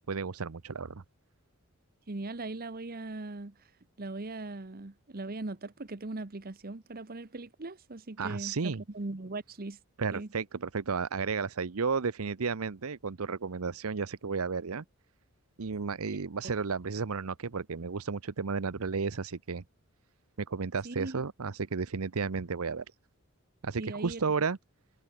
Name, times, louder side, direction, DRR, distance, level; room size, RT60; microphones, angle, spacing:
voice 1, 0.1-1.0 8.2-8.8 10.0-14.8 15.6-19.6 20.4-22.8 23.6-24.6, right 5 dB, 75° right, 0.8 m, -33 dB
voice 2, 2.1-3.5 4.0-9.8 10.1-10.3 20.8-21.2 23.8-24.2, right 2 dB, 40° right, 1.0 m, -39 dB
head